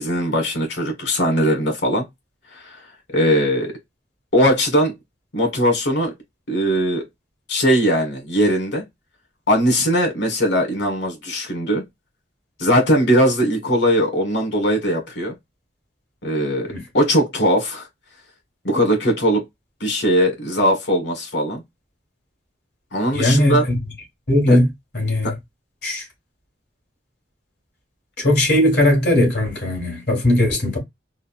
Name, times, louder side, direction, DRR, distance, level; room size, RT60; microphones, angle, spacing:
voice 1, 0.0-2.0 2.5-2.8 3.1-3.7 4.3-4.9 5.3-6.1 6.5-7.0 7.5-8.8 9.5-11.8 12.6-15.3 16.2-17.9 18.6-19.4 19.8-21.6 22.9-23.6 24.5-24.6 25.2-25.3, equal, 80° left, 1.5 m, -19 dB
voice 2, 23.1-23.6 24.3-24.7 24.9-25.3 25.8-26.1 28.2-30.8, left 1 dB, 60° left, 1.9 m, -18 dB
3.8 x 2.0 x 2.4 m
head